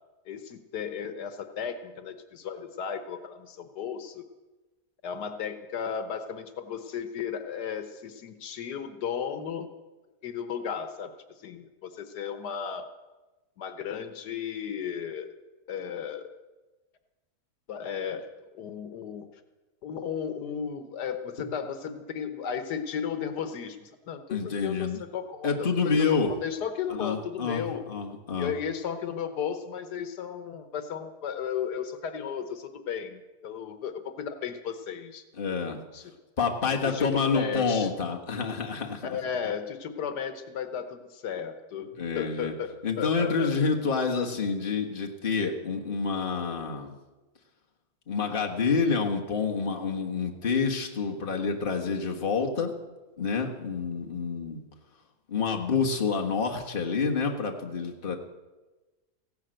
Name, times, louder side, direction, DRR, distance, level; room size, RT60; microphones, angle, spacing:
voice 1, 0.3-4.2 5.0-9.7 10.2-11.1 11.4-12.9 13.6-15.3 15.7-16.3 17.7-19.3 19.8-27.8 28.4-35.2 35.9-36.1 36.8-37.9 39.0-43.5, left 7 dB, 85° left, 9 dB, 1.6 m, -35 dB
voice 2, 24.3-25.0 25.4-26.3 27.0-28.5 35.4-35.8 36.4-39.1 42.0-42.5 42.8-47.0 48.1-52.7 53.2-54.6 55.3-58.2, left 5 dB, 35° left, 1 dB, 1.6 m, -28 dB
15.5 x 11.5 x 7.8 m, 1.2 s
omnidirectional pair, 1.7 m